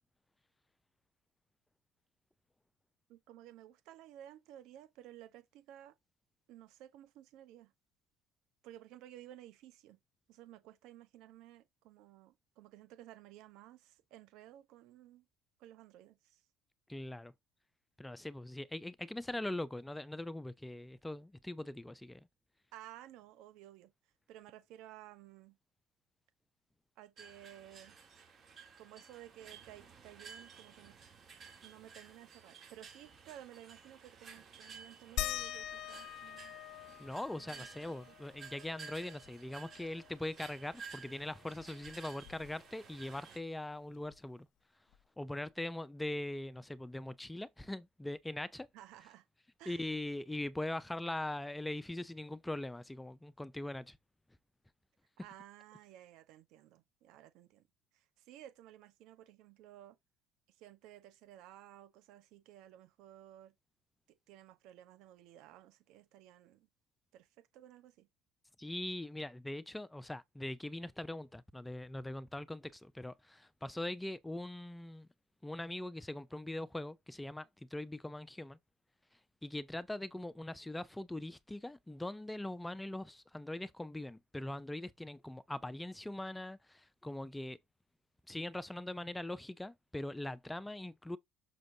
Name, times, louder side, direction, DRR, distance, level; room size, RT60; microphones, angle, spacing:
voice 1, 3.1-5.9 6.5-7.7 8.6-10.0 10.3-15.2 15.6-16.4 22.7-23.9 24.3-25.6 27.0-28.0 28.8-31.0 31.6-36.6 37.3-38.2 48.7-49.2 49.6-49.9 55.2-57.6 57.9-60.0 60.5-63.5 64.3-66.7 67.1-68.1, right 12 dB, 70° right, 1.2 m, -55 dB
voice 2, 16.9-17.3 18.0-22.3 37.0-44.5 45.2-48.7 49.7-54.0 68.6-75.1 75.4-78.6 79.4-87.6 88.3-91.2, left 1 dB, 10° left, 0.5 m, -41 dB
sound 1, 27.2-43.4, right 5 dB, 40° right, 3.5 m, -54 dB
sound 2, 35.2-40.3 40.7-40.8 41.1-42.8 44.1-44.2 44.9-45.0, left 11 dB, 65° left, 0.9 m, -44 dB
6.3 x 6.1 x 2.7 m
supercardioid pair, 80°, 0 cm